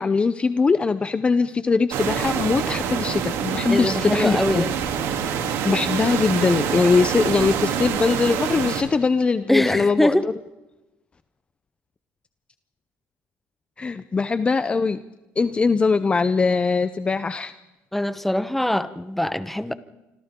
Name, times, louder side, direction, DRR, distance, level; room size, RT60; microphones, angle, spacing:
voice 1, 0.0-4.7 5.6-10.3 13.8-15.0 15.4-17.5, left 4 dB, 25° left, 12 dB, 0.7 m, -21 dB
sound 1, 1.9-8.8, right 7 dB, 75° right, 3.0 m, -26 dB
voice 2, 3.7-4.7 9.5-10.2 17.9-19.7, left 1 dB, 5° left, 12 dB, 1.1 m, -23 dB
26.5 x 26.5 x 3.8 m, 1.0 s
cardioid pair, 115°, 5 cm